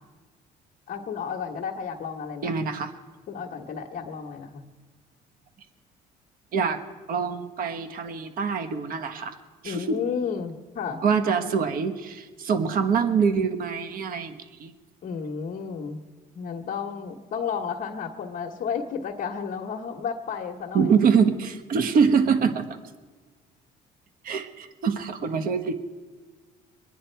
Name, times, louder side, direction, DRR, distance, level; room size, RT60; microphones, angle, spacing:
voice 1, 0.9-2.6 3.3-4.7 9.6-11.0 15.0-16.0 16.3-20.9, left 6 dB, 55° left, -2 dB, 1.2 m, -32 dB
voice 2, 2.4-2.9 6.5-6.8 7.1-9.3 9.6-10.0 11.0-14.7 20.7-22.7 24.2-25.7, right 6 dB, 55° right, 9 dB, 1.3 m, -24 dB
23.0 x 9.9 x 4.5 m, 1.4 s
cardioid pair, 110°, 17 cm